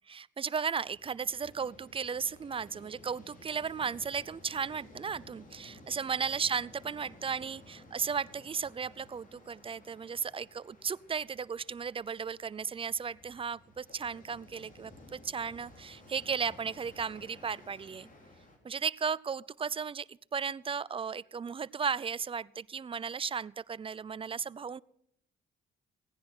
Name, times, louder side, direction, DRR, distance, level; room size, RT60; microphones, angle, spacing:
voice 1, 0.1-18.1 18.6-24.8, right 6 dB, 25° right, 21 dB, 0.4 m, -35 dB
sound 1, 0.8-18.6, left 1 dB, 40° left, 3.7 m, -55 dB
17.0 x 10.0 x 6.1 m, 0.74 s
cardioid pair, 90°, 20 cm